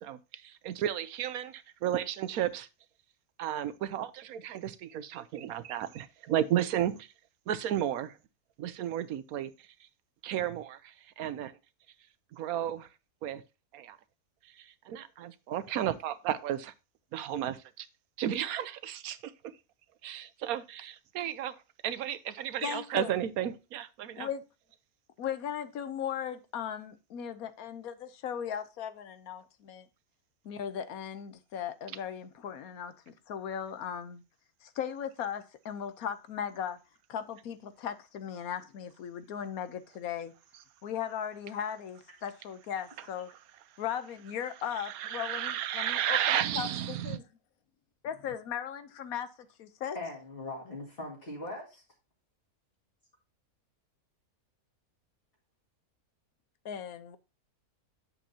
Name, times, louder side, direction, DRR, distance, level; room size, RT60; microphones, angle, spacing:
voice 1, 0.0-2.7 3.4-7.1 7.5-8.2 8.6-9.5 10.2-11.5 12.3-12.9 13.2-13.4 13.7-14.0 14.6-16.7 17.1-17.9 18.2-19.3 20.0-21.5 21.8-24.3 44.8-47.2, right 11 dB, 80° right, 1.1 m, -33 dB
voice 2, 22.6-23.1 24.2-24.4 25.2-29.9 30.4-34.2 34.6-36.8 37.1-40.3 40.8-43.3 43.8-47.2 48.0-50.0 56.6-57.2, left 8 dB, 75° left, 1.2 m, -37 dB
voice 3, 49.9-51.8, left 2 dB, 40° left, 2.3 m, -40 dB
8.8 x 6.8 x 2.8 m
omnidirectional pair, 1.6 m